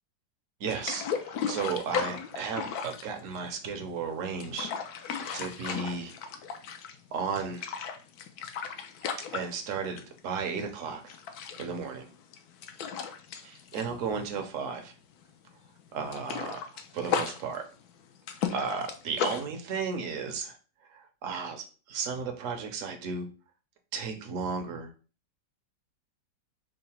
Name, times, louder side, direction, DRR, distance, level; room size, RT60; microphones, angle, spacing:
voice 1, 0.6-4.7 5.3-6.1 7.1-7.7 9.3-11.1 11.6-12.1 13.4-14.9 15.9-17.6 18.5-20.6 20.9-23.3 23.9-24.9, right 5 dB, 60° right, 5 dB, 0.9 m, -34 dB
sound 1, 0.7-3.8 4.2-7.1 7.4-10.2 10.5-10.7 11.1-14.9 15.1-15.3 15.7-19.4, left 7 dB, 70° left, 1.0 m, -35 dB
3.8 x 2.1 x 4.2 m, 0.36 s
omnidirectional pair, 1.9 m